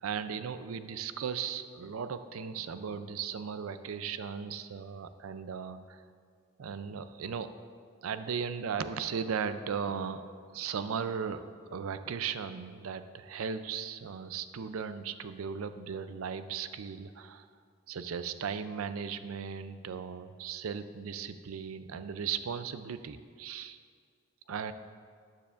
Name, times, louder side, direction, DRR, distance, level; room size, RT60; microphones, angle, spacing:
voice 1, 0.0-6.0 6.6-7.5 8.0-10.3 10.5-11.4 11.7-17.5 17.9-23.8 24.5-24.7, right 6 dB, 90° right, 11 dB, 0.4 m, -37 dB
13.5 x 9.7 x 2.5 m, 2.1 s
head